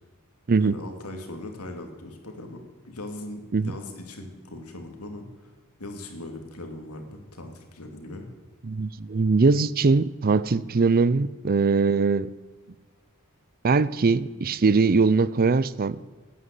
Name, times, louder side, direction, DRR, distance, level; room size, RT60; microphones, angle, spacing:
voice 1, 0.6-5.5 5.8-8.3, left 1 dB, 80° left, 4 dB, 2.6 m, -39 dB
voice 2, 8.6-12.3 13.6-16.0, right 4 dB, 40° right, 18 dB, 0.5 m, -21 dB
13.0 x 9.7 x 8.3 m, 1.3 s
head